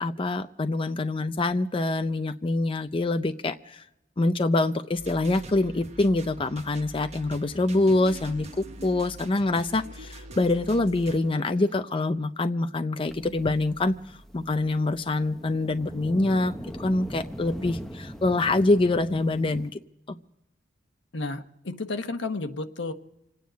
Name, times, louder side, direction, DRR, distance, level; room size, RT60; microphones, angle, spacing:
voice 1, 0.0-3.8 4.2-14.0 14.3-19.8, left 2 dB, 30° left, 8 dB, 0.5 m, -25 dB
sound 1, 5.0-11.2, right 1 dB, 35° right, 1.2 m, -44 dB
sound 2, 7.8-11.8, right 2 dB, 75° right, 1.0 m, -47 dB
sound 3, 13.1-19.7, equal, ahead, 0.8 m, -41 dB
voice 2, 21.1-22.9, left 3 dB, 70° left, 7 dB, 1.1 m, -32 dB
27.0 x 9.4 x 5.1 m, 0.89 s
head